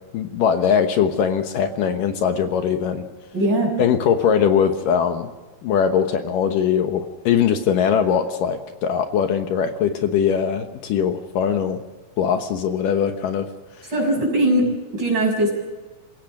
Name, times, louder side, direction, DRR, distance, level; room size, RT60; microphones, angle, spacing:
voice 1, 0.1-3.0 3.8-5.3 5.6-11.8 12.2-13.5, left 7 dB, 70° left, 6 dB, 2.7 m, -21 dB
voice 2, 3.3-3.8 13.9-15.6, right 1 dB, 30° right, 1 dB, 6.6 m, -20 dB
28.5 x 16.5 x 6.1 m, 1.2 s
omnidirectional pair, 4.1 m